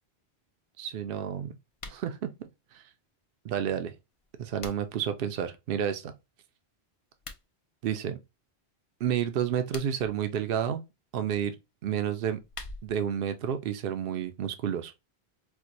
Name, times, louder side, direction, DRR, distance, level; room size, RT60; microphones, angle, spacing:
voice 1, 0.8-1.6 1.9-2.5 2.7-2.8 3.4-3.9 4.4-6.1 7.8-8.2 9.0-10.8 11.1-11.6 11.8-12.4 12.8-14.9, right 9 dB, 65° right, 0.7 m, -30 dB
sound 1, 1.7-2.1 4.1-5.1 7.1-7.4 9.5-10.1 12.1-13.1, left 3 dB, 45° left, 0.5 m, -45 dB
4.5 x 2.2 x 2.6 m
omnidirectional pair, 1.1 m